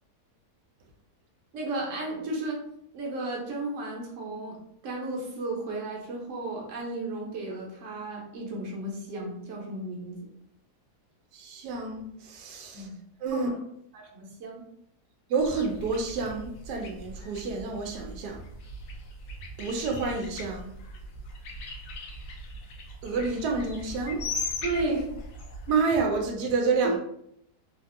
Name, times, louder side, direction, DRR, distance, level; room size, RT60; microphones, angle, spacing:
voice 1, 1.5-2.6 2.9-4.6 4.8-10.2 12.7-12.9 13.3-13.6 13.9-14.7 24.6-25.1 26.8-26.9, right 2 dB, 55° right, -2 dB, 1.1 m, -33 dB
voice 2, 11.3-12.9 13.2-13.5 15.3-18.4 19.6-20.7 23.0-24.2 25.7-27.0, right 4 dB, 90° right, 2 dB, 1.1 m, -29 dB
sound 1, 15.4-25.8, left 2 dB, 65° left, 0.9 m, -39 dB
3.4 x 2.5 x 2.5 m, 0.73 s
omnidirectional pair, 1.7 m